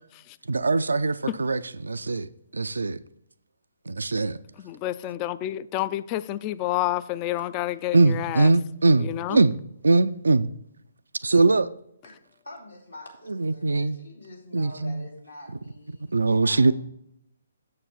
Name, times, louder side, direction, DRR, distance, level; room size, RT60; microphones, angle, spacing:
voice 1, 0.5-3.0 3.9-4.4 7.9-10.5 11.2-11.7 13.3-14.0 14.5-15.1 16.1-16.7, right 3 dB, 80° right, 0.3 m, -22 dB
voice 2, 4.6-8.5 9.0-9.4, left 14 dB, 25° left, 0.3 m, -29 dB
voice 3, 12.4-16.7, left 1 dB, 90° left, 2.9 m, -46 dB
7.2 x 6.7 x 4.1 m
figure-of-eight pair, 135°, 0 cm